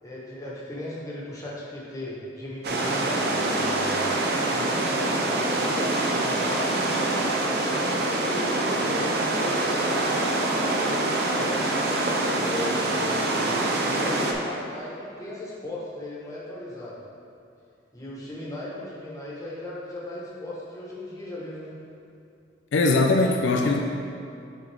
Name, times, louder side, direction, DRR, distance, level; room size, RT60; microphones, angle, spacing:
voice 1, 0.0-4.0 4.5-6.8 7.5-11.5 12.3-17.0 17.9-21.8, left 1 dB, 20° left, -6 dB, 1.1 m, -37 dB
sound 1, 2.6-14.3, right 2 dB, 55° right, 0.6 m, -25 dB
voice 2, 22.7-23.8, left 2 dB, 75° left, 2 dB, 0.4 m, -20 dB
7.5 x 3.8 x 3.4 m, 2.6 s
head